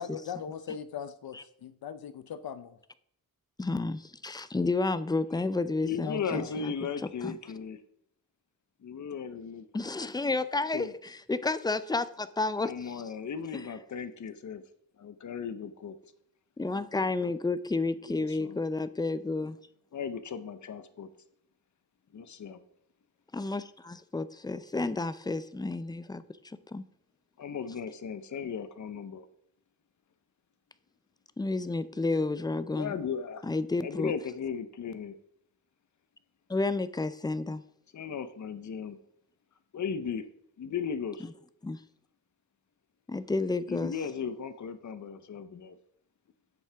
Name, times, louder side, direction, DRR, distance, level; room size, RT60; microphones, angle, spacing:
voice 1, 0.0-2.8 6.0-6.5, left 8 dB, 85° left, 0.6 m, -40 dB
voice 2, 3.6-6.7 7.2-7.3 9.7-13.0 16.6-19.6 23.3-26.2 26.7-26.8 31.4-33.0 33.4-34.1 36.5-37.6 41.6-41.8 43.1-43.9, left 3 dB, 10° left, 0.4 m, -31 dB
voice 3, 5.8-7.8 8.8-9.6 10.7-10.9 12.6-14.6 15.0-16.0 18.0-18.6 19.9-21.1 22.1-22.6 27.4-29.3 32.7-33.5 33.8-35.1 37.9-39.0 39.7-40.2 40.6-41.3 43.7-45.8, left 6 dB, 55° left, 0.8 m, -36 dB
11.0 x 7.3 x 3.4 m
wide cardioid pair, 130°, 35 cm